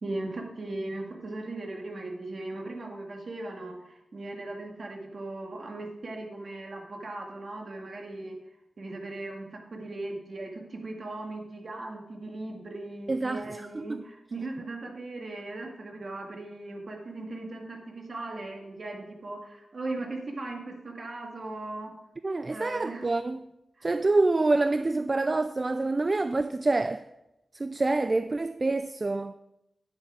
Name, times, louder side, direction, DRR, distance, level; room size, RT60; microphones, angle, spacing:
voice 1, 0.0-8.4 8.8-21.9 22.5-23.1 23.8-23.9, right 2 dB, 55° right, 1.9 m, -38 dB
voice 2, 13.1-14.0 22.2-23.5 23.8-27.1 27.5-29.3, right 2 dB, 35° right, 0.3 m, -27 dB
9.5 x 8.4 x 4.9 m
wide cardioid pair, 105°, 0 cm